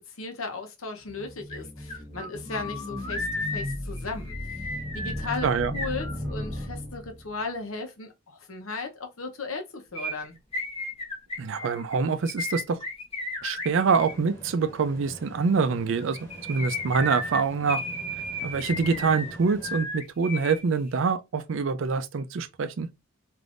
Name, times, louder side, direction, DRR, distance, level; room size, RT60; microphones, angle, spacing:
voice 1, 0.2-4.6 4.9-10.3, left 3 dB, 90° left, 0.8 m, -36 dB
sound 1, 1.0-7.4, left 1 dB, 15° right, 1.1 m, -36 dB
sound 2, 1.5-1.6 1.9-6.6 9.9-14.2 16.0-20.6 20.9-21.0, left 2 dB, 30° left, 0.9 m, -34 dB
voice 2, 5.4-5.8 11.4-12.8 13.4-16.2 16.5-17.8 18.4-22.9, right 5 dB, 70° right, 0.4 m, -25 dB
sound 3, 14.0-19.8, equal, 10° left, 1.7 m, -44 dB
3.5 x 2.6 x 2.4 m
head